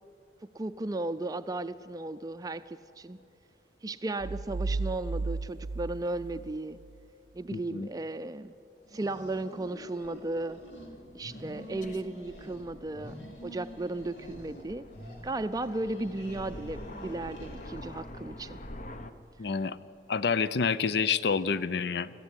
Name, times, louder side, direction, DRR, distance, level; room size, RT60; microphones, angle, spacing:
voice 1, 0.5-3.2 3.8-6.8 7.3-8.5 8.9-10.6 11.1-13.2 13.4-14.8 15.2-18.6, right 2 dB, 20° right, 10 dB, 0.4 m, -35 dB
sound 1, 4.2-7.0, right 3 dB, 75° right, 0.5 m, -34 dB
voice 2, 7.5-7.9 19.4-19.8 20.1-22.1, left 5 dB, 70° left, 16 dB, 0.6 m, -28 dB
sound 2, 8.8-10.9 11.2-12.7 12.9-14.6 14.9-18.1, equal, 85° left, 3.8 m, -48 dB
Aircraft, 9.8-19.1, left 1 dB, 45° left, 1.0 m, -47 dB
21.0 x 14.5 x 9.7 m, 2.6 s
head